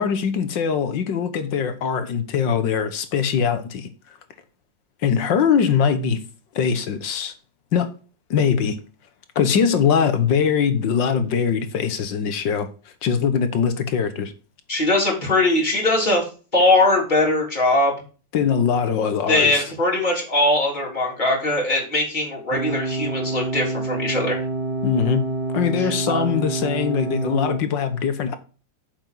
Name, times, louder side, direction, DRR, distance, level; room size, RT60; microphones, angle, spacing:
voice 1, 0.0-3.9 5.0-6.2 6.6-7.3 7.7-7.9 8.3-8.8 9.4-12.7 13.0-14.3 18.3-19.6 24.8-25.2 25.5-28.4, left 7 dB, 70° left, 1.8 m, -21 dB
voice 2, 14.7-16.2 16.5-17.9 19.3-24.4 25.8-26.2, left 2 dB, 20° left, 4.0 m, -21 dB
sound 1, 22.5-27.6, right 3 dB, 25° right, 2.7 m, -27 dB
9.0 x 7.1 x 3.9 m
omnidirectional pair, 2.1 m